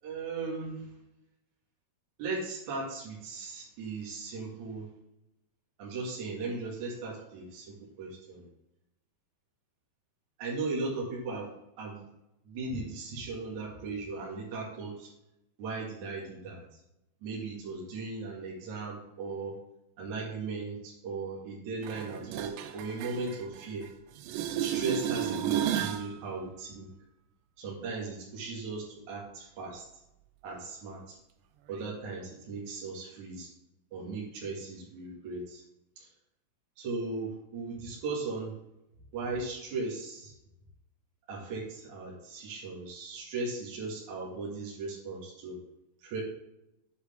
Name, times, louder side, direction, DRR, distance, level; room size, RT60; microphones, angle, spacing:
voice 1, 0.0-0.9 2.2-4.9 5.8-8.4 10.4-12.1 12.4-15.1 15.6-16.8 17.2-19.5 20.0-23.8 24.6-26.9 27.6-29.8 30.4-31.2 31.7-33.5 33.9-35.6 36.0-36.1 36.8-38.5 39.1-40.3 41.3-45.6 46.0-46.2, right 3 dB, 50° right, -4 dB, 3.2 m, -37 dB
sound 1, 21.8-23.9 24.2-26.1 31.8-31.9, right 10 dB, 90° right, 1.9 m, -33 dB
8.2 x 8.0 x 3.5 m, 0.86 s
omnidirectional pair, 4.6 m